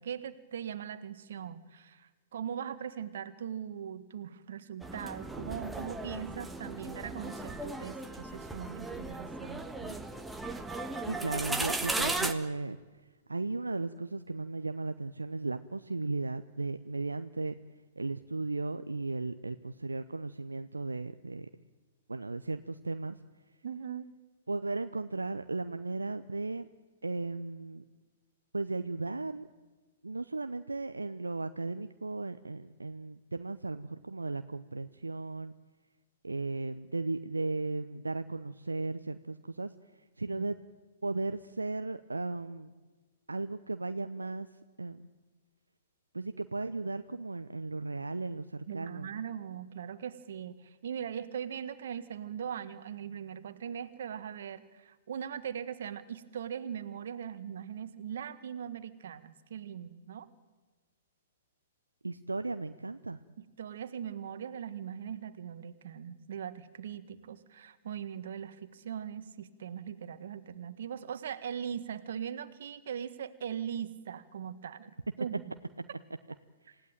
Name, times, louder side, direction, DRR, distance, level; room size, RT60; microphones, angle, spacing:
voice 1, 0.0-10.0 23.6-24.1 40.3-40.5 48.7-60.3 63.6-75.6, right 8 dB, 55° right, 11 dB, 1.7 m, -40 dB
sound 1, 4.8-12.3, right 2 dB, 5° right, 1.5 m, -36 dB
voice 2, 11.1-12.8 13.3-17.5 18.0-21.5 22.1-23.2 24.5-26.7 27.0-27.8 28.5-29.5 30.0-35.5 36.2-39.7 40.2-40.5 41.0-42.7 43.3-44.5 44.8-45.0 46.1-49.2 62.0-63.2 76.6-76.8, right 3 dB, 80° right, 10 dB, 0.7 m, -36 dB
27.0 x 16.5 x 9.1 m, 1.3 s
figure-of-eight pair, 115°, 0 cm